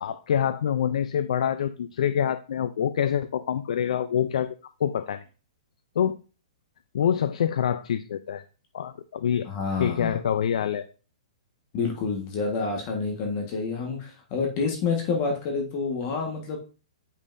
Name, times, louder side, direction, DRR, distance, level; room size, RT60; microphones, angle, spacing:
voice 1, 0.0-5.2 6.0-6.2 6.9-8.4 8.7-9.5 9.8-10.8, left 9 dB, 70° left, 12 dB, 0.5 m, -26 dB
voice 2, 9.4-10.2 11.7-16.6, left 4 dB, 30° left, 1 dB, 1.5 m, -28 dB
8.3 x 5.5 x 2.6 m, 0.34 s
hypercardioid pair, 160°, 4 cm